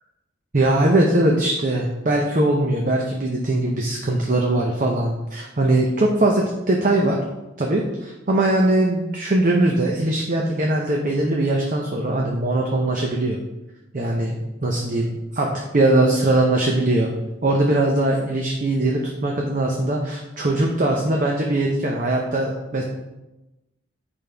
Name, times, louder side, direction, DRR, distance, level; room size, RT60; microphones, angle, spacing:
voice 1, 0.5-7.2 7.6-13.4 13.9-17.1 17.4-22.8, right 1 dB, 40° right, 0 dB, 0.7 m, -21 dB
8.6 x 5.3 x 3.4 m, 1.0 s
head